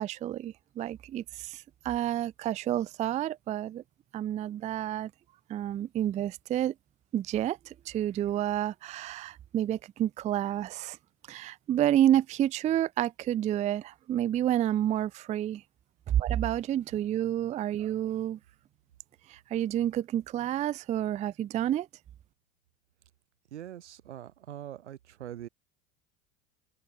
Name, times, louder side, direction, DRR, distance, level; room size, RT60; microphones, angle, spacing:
voice 1, 0.0-1.6 1.8-3.8 4.1-5.1 5.5-6.7 7.1-7.6 7.9-11.0 11.3-15.6 16.2-18.4 19.5-21.9, right 11 dB, 20° right, 0.3 m, -29 dB
voice 2, 23.5-25.5, right 11 dB, 90° right, 1.6 m, -43 dB
hypercardioid pair, 90°, 34 cm